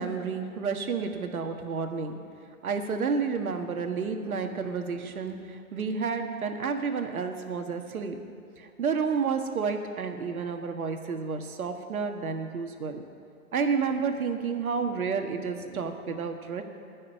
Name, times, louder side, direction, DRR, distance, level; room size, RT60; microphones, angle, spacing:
voice 1, 0.0-2.2 2.6-8.3 8.6-13.1 13.5-16.6, right 5 dB, 75° right, 5 dB, 1.7 m, -30 dB
20.0 x 6.6 x 9.1 m, 2.4 s
hypercardioid pair, 125°, 43 cm